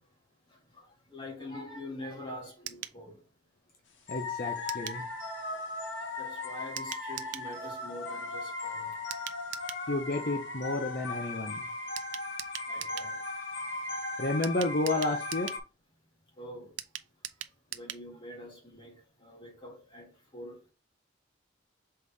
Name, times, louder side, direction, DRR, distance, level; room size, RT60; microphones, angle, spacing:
voice 1, 0.7-3.2 4.4-5.2 5.6-5.7 6.2-8.9 12.7-13.2 13.5-14.0 16.4-16.7 17.7-20.7, left 1 dB, 25° left, 2.3 m, -45 dB
sound 1, 2.6-3.0 4.7-5.0 6.8-7.5 9.1-9.8 12.0-13.1 14.4-15.6 16.8-18.1 18.4-18.5 18.7-18.8, right 11 dB, 75° right, 0.6 m, -41 dB
sound 2, 4.1-15.6, left 3 dB, 75° left, 1.4 m, -37 dB
voice 2, 4.1-5.0 9.9-11.6 14.2-15.5, left 2 dB, 45° left, 0.7 m, -31 dB
6.6 x 4.0 x 3.6 m
head